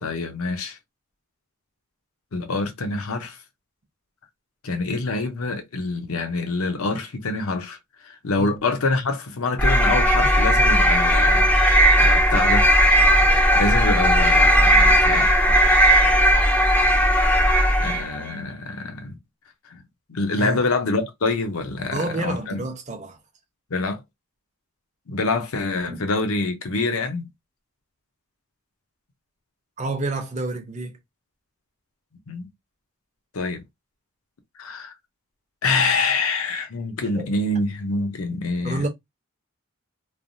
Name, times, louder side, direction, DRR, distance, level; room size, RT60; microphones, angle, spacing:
voice 1, 0.0-0.8 2.3-3.4 4.6-7.8 8.0-12.7 13.5-15.3 17.8-19.1 19.7-19.8 20.1-22.6 23.7-24.0 25.1-27.3 32.3-32.5 33.3-33.6 34.6-34.9 35.6-38.8, left 3 dB, 75° left, 0.7 m, -26 dB
sound 1, 9.6-18.2, equal, 5° left, 0.4 m, -17 dB
voice 2, 21.9-23.2 25.9-26.0 29.8-31.0 37.1-37.3 38.6-38.9, right 2 dB, 30° right, 0.6 m, -28 dB
3.2 x 2.1 x 2.6 m
head